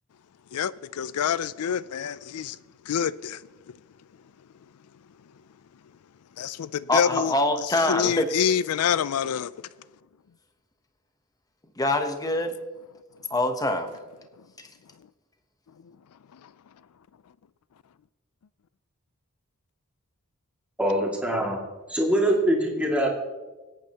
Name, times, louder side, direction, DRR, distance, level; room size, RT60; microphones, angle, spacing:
voice 1, 0.5-2.6 2.9-3.4 6.4-7.3 7.9-9.5, left 8 dB, 80° left, 0.4 m, -26 dB
voice 2, 6.9-8.3 11.8-12.5 13.3-13.9 14.6-14.7, left 1 dB, 15° left, 0.9 m, -24 dB
voice 3, 20.8-21.6 21.9-23.1, right 1 dB, 5° right, 2.2 m, -23 dB
24.0 x 8.8 x 2.9 m
head